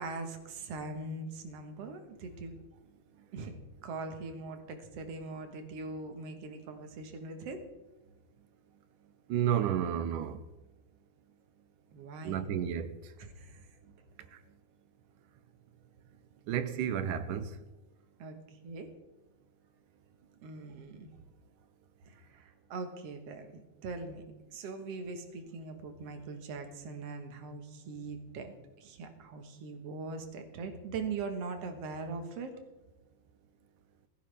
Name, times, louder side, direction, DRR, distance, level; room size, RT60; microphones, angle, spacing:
voice 1, 0.0-2.6 3.3-3.6 3.8-7.6 11.9-12.5 13.2-13.6 18.2-18.4 18.6-18.9 20.4-21.1 22.1-24.2 24.5-32.5, right 3 dB, 55° right, 2.2 m, -41 dB
voice 2, 9.3-10.4 12.2-12.9 16.5-17.5, right 9 dB, 85° right, 2.3 m, -31 dB
16.0 x 15.0 x 3.4 m
omnidirectional pair, 3.6 m